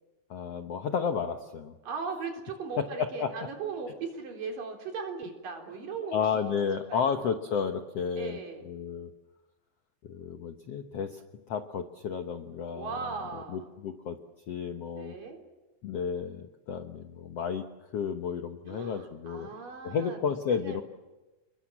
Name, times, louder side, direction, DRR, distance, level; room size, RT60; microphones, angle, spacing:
voice 1, 0.3-1.7 2.8-3.3 6.1-9.1 10.0-11.2 11.5-12.9 13.5-14.2 14.5-15.1 15.8-17.6 17.9-19.5 19.8-20.8, left 6 dB, 65° left, 7 dB, 1.5 m, -32 dB
voice 2, 1.8-6.5 6.9-7.1 8.2-8.7 12.7-13.7 14.9-15.4 18.6-20.4 20.6-20.8, right 5 dB, 60° right, 3 dB, 5.3 m, -38 dB
29.5 x 22.0 x 7.4 m, 1.1 s
omnidirectional pair, 4.4 m